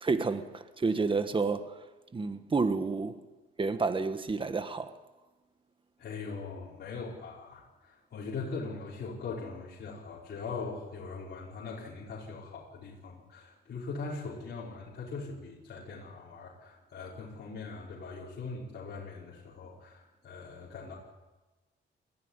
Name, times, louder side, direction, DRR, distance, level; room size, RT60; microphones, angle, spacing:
voice 1, 0.0-1.7 2.1-3.2 3.6-4.9, right 4 dB, 25° right, 1.5 m, -30 dB
voice 2, 6.0-20.9, left 4 dB, 55° left, 5.2 m, -41 dB
22.0 x 15.0 x 9.8 m
cardioid pair, 90°, 20 cm